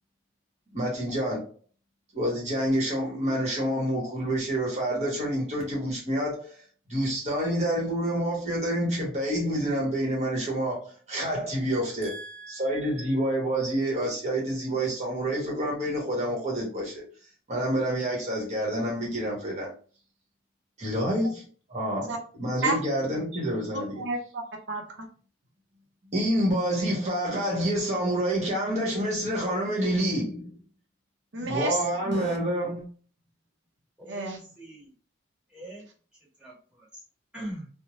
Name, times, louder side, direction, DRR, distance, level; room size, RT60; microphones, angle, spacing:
voice 1, 0.7-1.5 2.1-6.6 6.9-12.2 12.5-17.0 17.5-19.7 20.8-21.4 21.7-24.0 26.1-30.5 31.4-32.9, right 1 dB, 35° right, 1.1 m, -28 dB
voice 2, 12.0-12.8 22.1-22.2 22.6-22.8 23.7-24.4 24.7-25.1 31.3-32.4 34.1-34.4, right 2 dB, 70° right, 0.6 m, -32 dB
voice 3, 34.0-34.9 35.5-35.8 36.4-37.0 37.3-37.7, right 1 dB, 5° right, 1.2 m, -41 dB
2.6 x 2.1 x 3.0 m
head